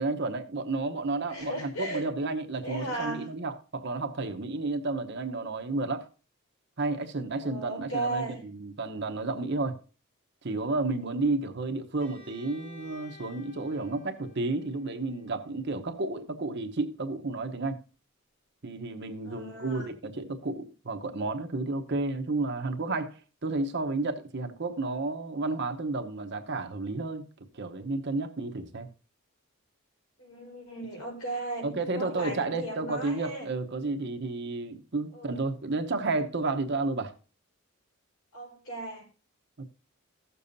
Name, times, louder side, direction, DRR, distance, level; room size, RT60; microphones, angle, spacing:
voice 1, 0.0-6.0 6.8-9.8 10.4-17.8 18.6-27.3 27.5-28.9 31.6-37.1 39.6-39.7, right 3 dB, 50° right, 0.9 m, -31 dB
voice 2, 1.3-2.1 2.6-3.3 7.4-8.4 19.2-19.9 30.2-33.5 35.1-35.5 38.3-39.1, right 2 dB, 75° left, 4.7 m, -36 dB
Bowed string instrument, 12.0-15.8, left 2 dB, 60° left, 2.3 m, -54 dB
15.5 x 6.9 x 2.7 m
head